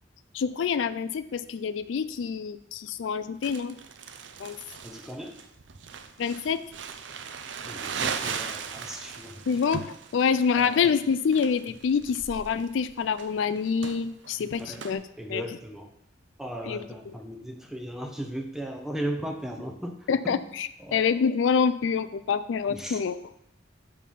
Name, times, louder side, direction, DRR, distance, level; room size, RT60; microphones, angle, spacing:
voice 1, 0.3-3.8 4.4-4.6 6.2-6.6 9.5-9.8 10.1-15.0 15.3-15.4 16.7-16.8 20.1-23.1, left 6 dB, 85° left, 12 dB, 0.4 m, -26 dB
Crumpling crinkling, 3.4-14.9, right 6 dB, 75° right, 0.6 m, -38 dB
voice 2, 4.8-5.4 7.6-9.5 10.5-11.1 11.7-11.8 14.4-14.9 15.2-15.9 16.4-20.4 20.8-21.2 22.7-23.1, right 1 dB, 5° right, 3 dB, 0.6 m, -37 dB
6.5 x 5.4 x 5.5 m, 0.76 s
head